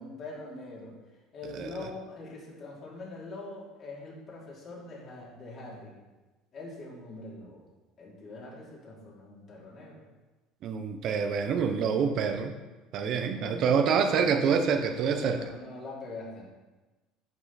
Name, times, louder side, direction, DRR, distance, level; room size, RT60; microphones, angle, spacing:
voice 1, 0.0-5.9 6.5-7.6 8.0-10.0 13.0-14.3 15.1-16.4, left 2 dB, 40° left, -4 dB, 3.1 m, -43 dB
voice 2, 10.6-12.5 12.9-15.4, right 6 dB, 50° right, 7 dB, 0.8 m, -26 dB
10.5 x 5.5 x 4.2 m, 1.1 s
cardioid pair, 125°, 0 cm